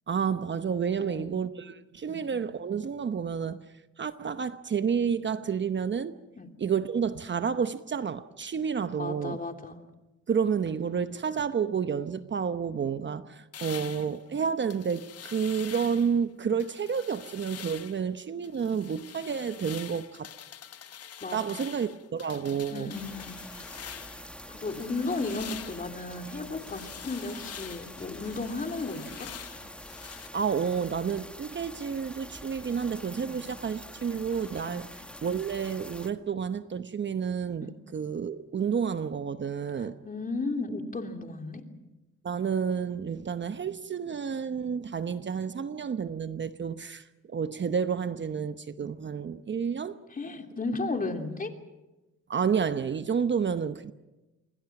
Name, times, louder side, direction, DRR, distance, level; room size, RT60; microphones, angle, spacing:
voice 1, 0.1-3.6 4.0-6.1 6.6-9.4 10.3-20.3 21.3-22.9 30.3-40.0 42.2-50.0 52.3-53.9, right 6 dB, 40° right, 0.9 m, -30 dB
voice 2, 1.0-1.4 2.1-2.3 6.4-6.5 9.0-9.8 21.2-21.6 22.7-23.3 23.8-24.0 24.5-29.3 33.2-33.4 34.6-34.8 37.6-37.7 40.0-41.6 50.1-51.5, left 3 dB, 30° left, 3.1 m, -34 dB
sound 1, 13.5-16.2 16.6-18.1 18.4-24.3 24.7-30.3, left 9 dB, 55° left, 1.2 m, -45 dB
sound 2, 22.9-36.1, equal, 5° left, 1.6 m, -45 dB
28.0 x 23.0 x 6.0 m
cardioid pair, 90°, 30 cm